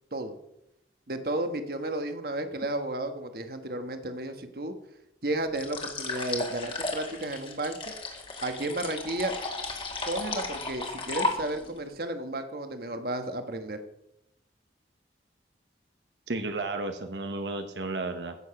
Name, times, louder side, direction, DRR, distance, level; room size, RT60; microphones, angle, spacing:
voice 1, 1.1-4.7 5.2-7.8 8.4-9.3 10.0-13.8, right 1 dB, 55° right, 7 dB, 1.3 m, -33 dB
sound 1, 5.5-11.8, left 3 dB, 30° left, 1.9 m, -34 dB
voice 2, 16.3-18.4, right 2 dB, 80° right, 6 dB, 1.1 m, -33 dB
15.5 x 7.3 x 5.9 m, 0.84 s
head